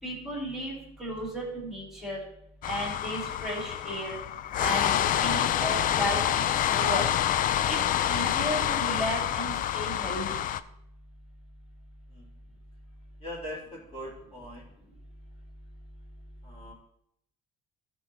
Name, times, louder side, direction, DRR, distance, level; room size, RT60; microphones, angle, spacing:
voice 1, 0.0-0.7 1.0-2.2 2.6-4.2 4.6-4.9 5.2-7.1 7.7-7.8 8.1-10.4, equal, ahead, -5 dB, 3.2 m, -34 dB
sound 1, 2.6-10.6, left 11 dB, 55° left, 0.4 m, -27 dB
voice 2, 13.2-14.6 16.4-16.7, equal, 35° left, -6 dB, 3.6 m, -41 dB
14.0 x 4.7 x 4.2 m, 0.74 s
cardioid pair, 110°, 17 cm